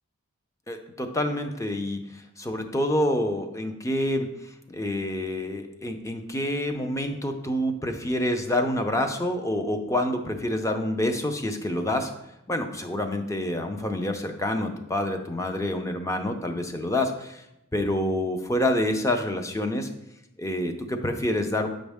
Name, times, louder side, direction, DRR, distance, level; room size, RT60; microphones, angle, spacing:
voice 1, 0.7-2.0 2.4-4.3 4.7-12.1 12.5-17.4 17.7-19.9 20.4-21.7, left 1 dB, 15° left, 6 dB, 0.6 m, -27 dB
8.0 x 5.2 x 3.5 m, 0.87 s
head